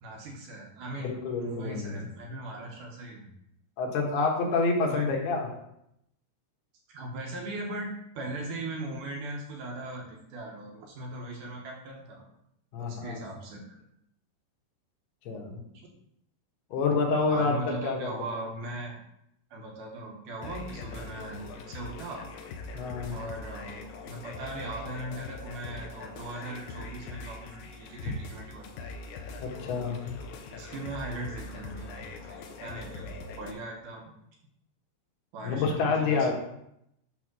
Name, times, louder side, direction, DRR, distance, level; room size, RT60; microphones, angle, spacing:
voice 1, 0.0-3.3 4.9-5.1 6.9-12.2 12.8-13.8 17.3-18.9 19.5-22.3 23.1-28.7 30.5-33.1 33.4-34.0 35.3-36.3, right 1 dB, 65° right, 0 dB, 2.1 m, -39 dB
voice 2, 1.0-2.0 3.8-5.5 12.7-13.2 15.3-15.6 16.7-18.1 22.7-23.1 29.4-30.0 35.4-36.3, left 4 dB, 70° left, 0 dB, 3.1 m, -28 dB
sound 1, 20.4-33.5, left 3 dB, 90° left, 2.0 m, -42 dB
8.4 x 3.5 x 6.1 m, 0.78 s
omnidirectional pair, 5.0 m